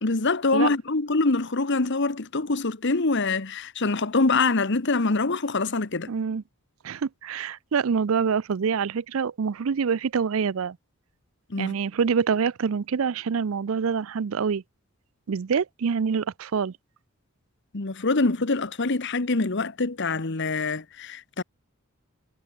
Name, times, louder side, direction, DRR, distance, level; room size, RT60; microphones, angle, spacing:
voice 1, 0.0-6.1 11.5-11.7 17.7-21.4, left 3 dB, 55° left, 1.2 m, -25 dB
voice 2, 6.1-6.4 6.8-10.8 11.6-14.6 15.3-16.7, right 6 dB, 70° right, 0.5 m, -26 dB
head